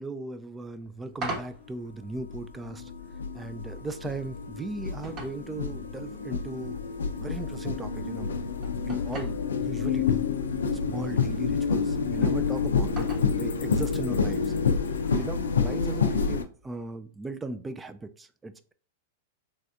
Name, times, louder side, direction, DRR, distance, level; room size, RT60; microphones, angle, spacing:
voice 1, 0.0-2.9 3.3-6.8 7.2-8.3 8.8-10.3 10.9-13.1 13.4-14.5 15.1-18.7, right 2 dB, 15° right, 0.3 m, -37 dB
sound 1, 0.6-16.9, right 2 dB, 35° right, 1.0 m, -46 dB
sound 2, 1.3-1.4 2.1-16.4, left 5 dB, 90° left, 0.4 m, -28 dB
3.2 x 2.6 x 2.3 m
hypercardioid pair, 115°, 0 cm